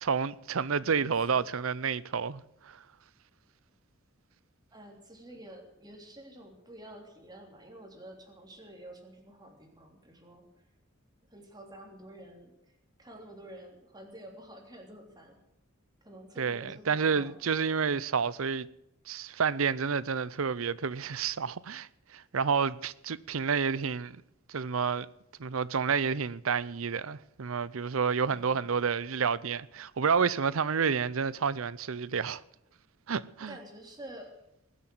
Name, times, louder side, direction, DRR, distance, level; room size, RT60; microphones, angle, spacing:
voice 1, 0.0-2.8 16.4-18.7 19.1-24.2 24.5-25.1 25.4-32.4 33.1-33.6, right 6 dB, 80° right, 0.6 m, -30 dB
voice 2, 0.8-1.5 4.7-10.5 11.3-15.4 16.0-17.4 28.2-28.7 33.5-34.4, right 1 dB, 20° right, 3.3 m, -49 dB
20.5 x 8.3 x 7.8 m
head